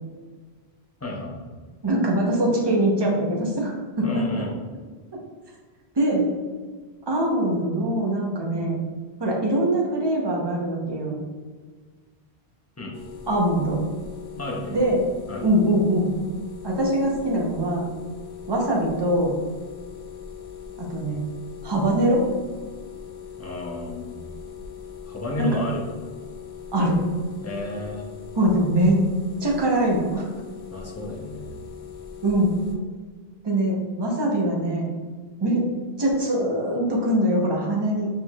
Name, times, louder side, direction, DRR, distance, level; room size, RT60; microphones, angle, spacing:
voice 1, 1.0-1.4 4.0-4.6 12.8-12.9 14.4-14.8 15.3-15.5 23.4-24.1 25.1-25.8 27.4-28.1 30.7-31.6, left 1 dB, 20° left, -1 dB, 0.4 m, -31 dB
voice 2, 1.8-4.4 6.0-6.2 7.1-8.8 9.2-11.2 13.3-13.8 14.7-15.0 15.4-16.1 16.6-17.8 18.5-19.4 20.8-21.2 21.6-22.3 25.4-25.5 26.7-27.0 28.4-29.0 29.4-30.3 32.2-32.6 33.4-34.9 35.4-35.7 36.0-38.1, right 1 dB, 25° right, -2 dB, 0.7 m, -22 dB
sound 1, 12.9-32.8, left 8 dB, 80° left, 0.9 m, -40 dB
4.5 x 3.8 x 2.3 m, 1.5 s
omnidirectional pair, 1.1 m